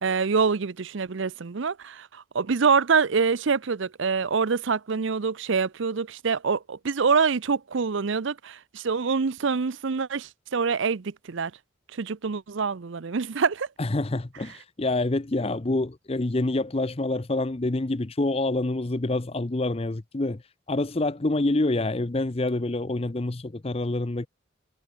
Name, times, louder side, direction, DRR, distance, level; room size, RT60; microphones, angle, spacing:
voice 1, 0.0-11.5 11.9-13.7, right 5 dB, 65° right, 0.6 m, -25 dB
voice 2, 13.8-20.4 20.7-24.3, left 2 dB, 30° left, 0.6 m, -27 dB
head